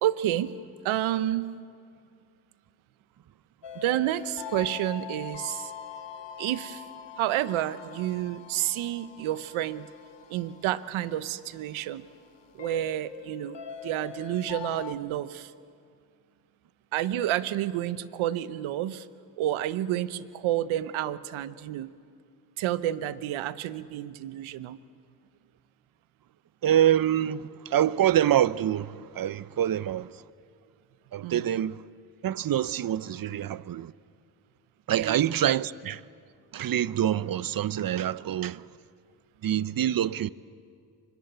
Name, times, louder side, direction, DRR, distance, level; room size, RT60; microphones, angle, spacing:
voice 1, 0.0-0.5 0.8-1.5 3.7-5.7 6.4-6.8 7.2-9.9 10.3-12.1 12.5-15.5 16.9-19.1 19.4-21.9 22.6-24.8 31.2-31.5 34.9-35.2, right 13 dB, 85° right, 1.0 m, -30 dB
sound 1, 3.6-14.9, left 9 dB, 60° left, 1.6 m, -43 dB
voice 2, 26.6-30.1 31.1-31.8 32.2-33.9 34.9-36.0 36.5-38.6 39.4-40.3, right 11 dB, 45° right, 0.7 m, -26 dB
25.0 x 21.0 x 9.2 m
supercardioid pair, 65°, 48 cm